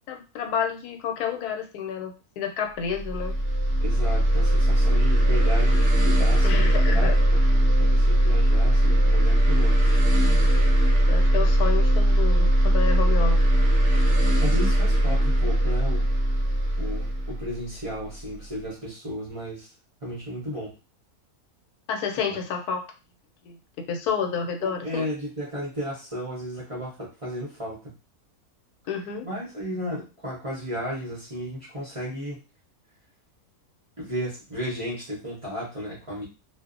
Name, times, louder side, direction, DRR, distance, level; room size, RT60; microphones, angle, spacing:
voice 1, 0.0-3.3 6.4-7.2 11.1-13.4 21.9-22.9 23.4-23.6 23.9-25.1 28.9-29.3, left 6 dB, 85° left, 4 dB, 1.1 m, -30 dB
sound 1, 2.9-18.3, right 1 dB, 60° right, 0.8 m, -20 dB
voice 2, 3.8-7.4 7.8-9.8 14.4-16.1 16.7-19.7 20.0-20.7 22.3-22.4 24.6-27.9 29.2-32.4 34.0-36.2, equal, 35° right, -7 dB, 0.6 m, -34 dB
2.6 x 2.0 x 2.4 m, 0.31 s
omnidirectional pair, 1.6 m